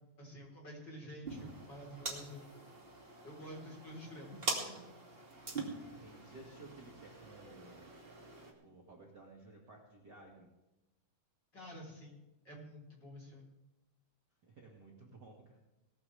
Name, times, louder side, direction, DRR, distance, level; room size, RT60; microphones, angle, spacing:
voice 1, 0.2-2.7 3.2-4.8 11.5-12.2 12.4-13.5, equal, 25° left, -2 dB, 4.1 m, -50 dB
sound 1, 1.2-8.5, right 2 dB, 20° right, 1.5 m, -44 dB
voice 2, 5.8-7.8 8.6-10.5 14.4-15.6, right 2 dB, 55° right, -2 dB, 1.1 m, -55 dB
19.0 x 14.0 x 3.4 m, 1.0 s
omnidirectional pair, 5.2 m